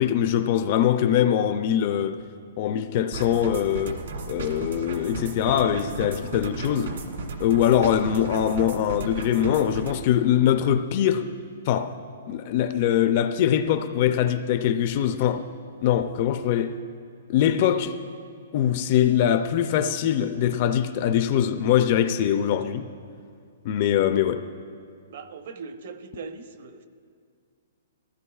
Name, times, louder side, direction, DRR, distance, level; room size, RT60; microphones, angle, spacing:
voice 1, 0.0-2.2 2.6-4.0 4.3-7.0 7.4-11.3 11.7-11.9 12.3-15.4 15.8-16.7 17.3-18.0 18.5-22.9 23.6-24.4, left 10 dB, 30° left, 0.3 m, -22 dB
sound 1, 3.1-10.0, right 3 dB, 65° right, 1.8 m, -35 dB
voice 2, 25.1-26.9, right 5 dB, 45° right, 0.7 m, -40 dB
20.0 x 15.5 x 2.3 m
hypercardioid pair, 180°, 0 cm